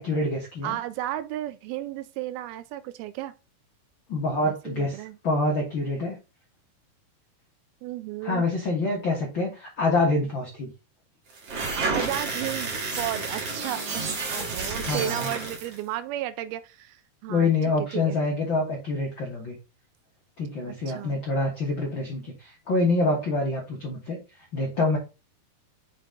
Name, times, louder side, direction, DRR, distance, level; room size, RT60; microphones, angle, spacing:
voice 1, 0.0-0.8 4.1-5.0 5.2-6.1 8.2-10.7 14.8-15.3 17.3-19.6 20.4-25.0, left 2 dB, 65° left, 1.1 m, -26 dB
voice 2, 0.6-3.3 4.5-5.2 7.8-8.5 11.7-17.5 17.8-18.2 20.6-21.2, right 13 dB, 80° right, 2.4 m, -34 dB
sound 1, 11.4-15.8, right 3 dB, 45° right, 2.5 m, -30 dB
6.2 x 4.6 x 3.7 m
omnidirectional pair, 4.5 m